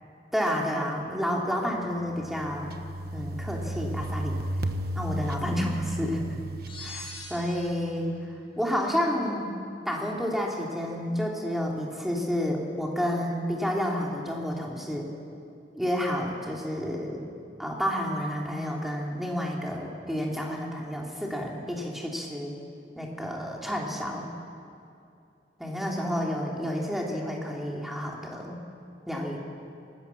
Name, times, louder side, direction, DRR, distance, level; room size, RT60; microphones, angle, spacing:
voice 1, 0.3-2.8 3.1-4.4 4.9-6.4 6.8-8.2 8.6-9.5 9.8-15.1 15.7-17.3 17.6-22.5 22.9-24.3 25.6-28.6 29.1-29.4, equal, ahead, -2 dB, 3.1 m, -30 dB
sound 1, 2.0-7.6, right 1 dB, 55° right, 1.3 m, -34 dB
sound 2, 6.7-8.0, left 3 dB, 30° left, 4.9 m, -42 dB
26.0 x 18.5 x 7.1 m, 2.5 s
head